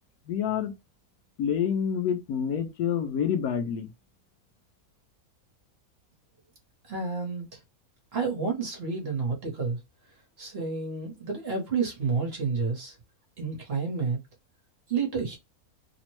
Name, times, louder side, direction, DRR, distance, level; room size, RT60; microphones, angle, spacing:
voice 1, 0.3-0.7 1.4-3.9, left 8 dB, 85° left, 1.1 m, -27 dB
voice 2, 6.9-7.6 8.1-9.8 10.4-12.9 13.4-14.2 14.9-15.4, right 5 dB, 50° right, 1.0 m, -30 dB
3.0 x 2.1 x 3.0 m
omnidirectional pair, 1.6 m